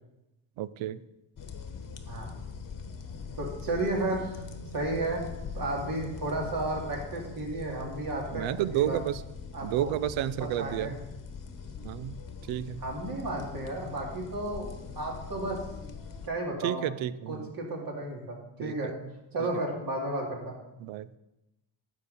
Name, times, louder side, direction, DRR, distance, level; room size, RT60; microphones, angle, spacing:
voice 1, 0.6-1.0 8.3-9.2 9.6-11.0 11.8-12.2 12.5-12.8 16.6-17.5 18.6-18.9 19.4-19.5 20.8-21.1, right 12 dB, 80° right, 16 dB, 0.6 m, -31 dB
sound 1, 1.4-16.3, left 5 dB, 45° left, 1.2 m, -42 dB
voice 2, 2.1-2.4 3.4-4.4 4.7-5.2 5.5-9.0 9.5-9.9 10.4-10.9 12.8-14.7 15.0-15.6 16.3-16.9 17.3-18.9 19.3-20.5, right 2 dB, 45° right, -1 dB, 2.6 m, -33 dB
10.5 x 7.0 x 4.2 m, 0.94 s
cardioid pair, 100°, 46 cm